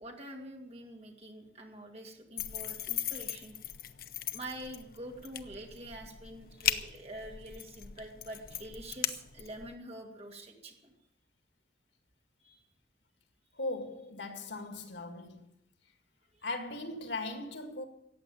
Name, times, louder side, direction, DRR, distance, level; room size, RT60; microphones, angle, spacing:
voice 1, 0.0-3.6 4.3-10.9 12.4-12.6 16.3-16.5, right 1 dB, 35° right, 2.4 m, -46 dB
sound 1, 2.4-9.7, left 10 dB, 55° left, 0.8 m, -38 dB
voice 2, 13.5-15.5 16.4-17.9, left 2 dB, 85° left, 2.0 m, -38 dB
14.5 x 8.9 x 8.6 m
head